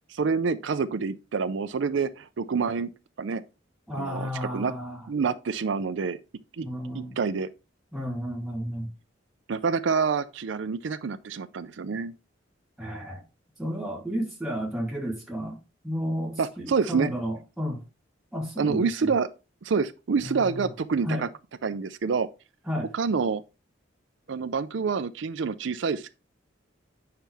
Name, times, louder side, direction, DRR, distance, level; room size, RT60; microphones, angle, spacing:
voice 1, 0.1-2.9 3.2-3.4 3.9-4.7 5.1-6.2 6.6-6.7 6.9-7.5 9.5-12.1 16.4-17.1 18.6-19.3 19.6-21.3 21.6-22.3 22.9-23.4 24.3-26.1, right 5 dB, 70° right, 0.5 m, -27 dB
voice 2, 3.9-5.1 6.6-7.2 7.9-8.9 12.8-13.2 13.6-17.8 18.3-19.1 20.2-20.7 21.0-21.3 22.7-22.9, equal, ahead, 3.1 m, -32 dB
9.1 x 5.6 x 3.4 m
head